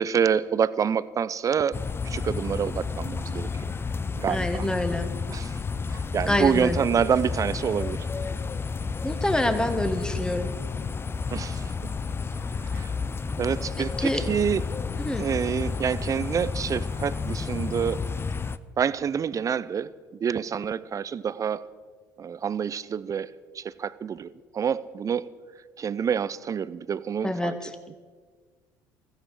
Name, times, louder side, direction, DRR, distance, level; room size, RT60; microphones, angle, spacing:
voice 1, 0.0-1.8 2.0-3.5 4.2-4.7 5.3-5.5 5.9-8.1 11.3-11.9 12.7-12.9 13.4-14.6 15.2-18.0 18.8-19.9 20.2-21.6 22.2-25.3 25.8-27.6 27.9-28.0, right 7 dB, 35° right, 17 dB, 0.6 m, -27 dB
sound 1, 1.7-18.6, left 4 dB, 25° left, 0.6 m, -31 dB
voice 2, 4.3-5.1 6.3-6.8 9.0-10.5 13.8-14.2 15.0-15.2 27.2-27.7, left 1 dB, 10° left, 8 dB, 1.6 m, -27 dB
16.0 x 14.5 x 4.9 m, 1.5 s
hypercardioid pair, 65°, 9 cm